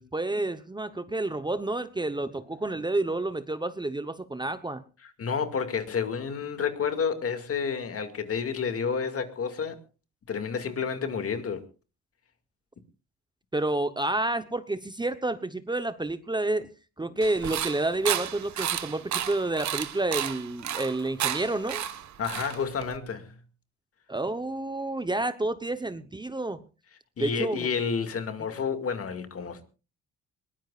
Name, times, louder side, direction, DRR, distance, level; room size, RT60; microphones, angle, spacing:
voice 1, 0.0-4.8 13.5-16.7 17.0-21.8 24.1-26.6 27.2-27.7, right 2 dB, 15° right, 1.0 m, -29 dB
voice 2, 5.0-9.8 10.3-11.7 22.2-23.3 27.2-29.6, left 6 dB, 50° left, 2.3 m, -30 dB
sound 1, 17.2-23.0, right 10 dB, 65° right, 1.4 m, -32 dB
21.5 x 19.0 x 2.5 m
cardioid pair, 90°, 30 cm